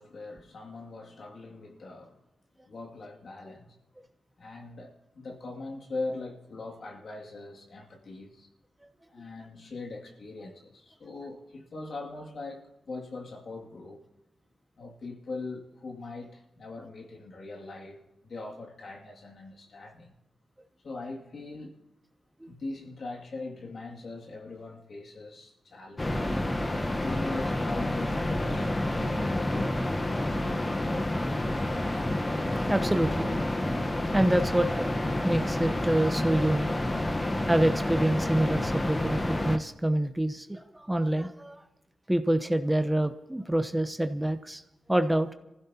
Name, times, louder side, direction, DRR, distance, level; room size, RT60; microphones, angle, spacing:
voice 1, 0.0-2.2 2.6-3.7 4.4-8.5 9.1-14.0 14.8-20.1 20.8-21.8 22.5-26.4 27.0-30.2 36.9-37.1, left 3 dB, 65° left, 2.4 m, -41 dB
sound 1, 26.0-39.6, left 1 dB, 25° left, 1.1 m, -29 dB
voice 2, 32.7-33.3 34.1-34.9 35.2-36.7 37.5-41.6 42.1-44.6 44.9-45.3, right 1 dB, 10° right, 0.9 m, -26 dB
25.5 x 15.5 x 2.9 m
cardioid pair, 70°, 0 cm